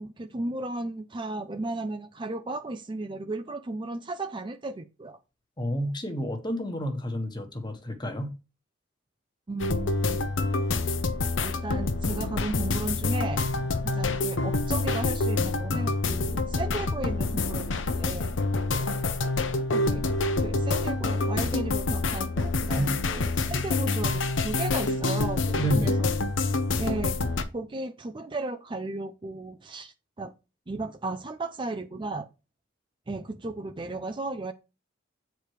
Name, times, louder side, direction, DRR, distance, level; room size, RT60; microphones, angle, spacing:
voice 1, 0.0-5.2 9.5-10.3 11.4-13.4 13.8-18.3 19.5-20.1 20.4-26.1 26.8-27.2 27.5-30.3 30.7-32.3 33.1-34.5, right 2 dB, 25° right, 0.5 m, -35 dB
voice 2, 5.6-8.3 22.7-22.9 25.5-26.0, equal, 25° left, 1.4 m, -30 dB
sound 1, 9.6-27.4, left 3 dB, 70° left, 0.8 m, -27 dB
8.4 x 4.6 x 4.8 m
head